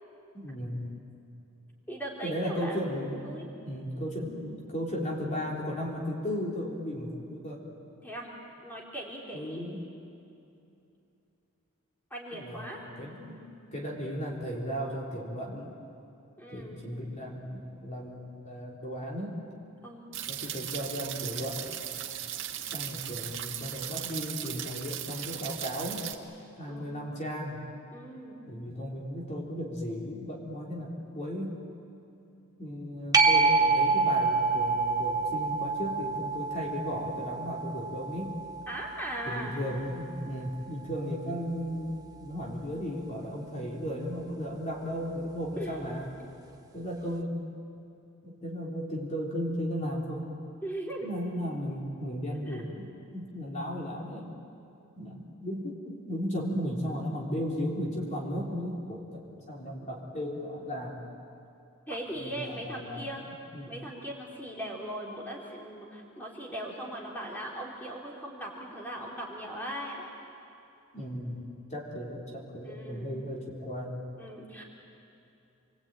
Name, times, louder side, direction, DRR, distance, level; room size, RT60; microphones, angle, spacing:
voice 1, 0.3-0.9 2.2-3.3 3.6-7.6 9.3-9.9 12.4-13.5 13.7-15.7 16.5-19.4 20.3-21.6 22.7-26.1 26.6-27.6 28.5-31.6 32.6-38.4 39.3-46.1 46.7-47.4 48.2-50.3 51.0-54.4 55.0-59.2 59.5-61.1 62.1-63.1 63.5-63.7 70.9-71.4 71.7-74.0, equal, 35° left, -2 dB, 3.6 m, -35 dB
voice 2, 1.9-2.8 3.2-3.5 8.0-8.3 8.6-9.6 12.1-12.8 16.4-16.8 19.8-20.0 26.7-26.9 27.9-28.4 38.7-39.6 45.6-45.7 50.6-51.1 52.5-52.6 61.9-63.2 63.7-70.1 72.6-73.1 74.2-74.6, right 1 dB, 10° left, -3 dB, 3.7 m, -39 dB
sound 1, 20.1-26.1, right 11 dB, 60° right, 1.9 m, -37 dB
sound 2, 33.1-40.3 45.8-45.9, right 4 dB, 15° right, 1.2 m, -27 dB
29.0 x 22.5 x 9.1 m, 2.7 s
head